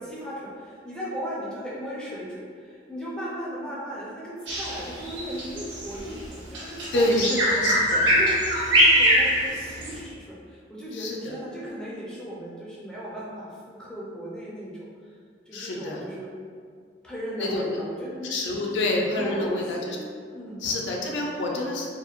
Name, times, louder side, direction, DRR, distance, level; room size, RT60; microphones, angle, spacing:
voice 1, 0.0-7.4 8.1-14.8 15.5-16.3 17.0-19.9 20.3-20.6, equal, 5° left, -7 dB, 0.4 m, -37 dB
Bird vocalization bird call bird song, 4.5-10.0, equal, 85° right, 0.9 m, -22 dB
voice 2, 6.9-8.0 11.0-11.2 15.5-16.0 17.4-17.8 18.3-20.0 20.6-21.9, left 1 dB, 70° left, -1 dB, 0.4 m, -27 dB
2.8 x 2.1 x 2.4 m, 2.1 s
head